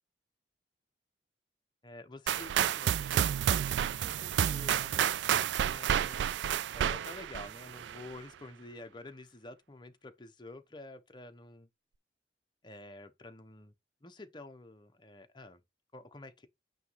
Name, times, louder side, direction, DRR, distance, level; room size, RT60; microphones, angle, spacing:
voice 1, 1.8-11.7 12.6-13.7 14.0-15.6 15.9-16.5, left 2 dB, 25° left, 1.0 m, -49 dB
sound 1, 2.3-8.1, right 9 dB, 85° right, 0.3 m, -30 dB
9.3 x 3.1 x 5.7 m
head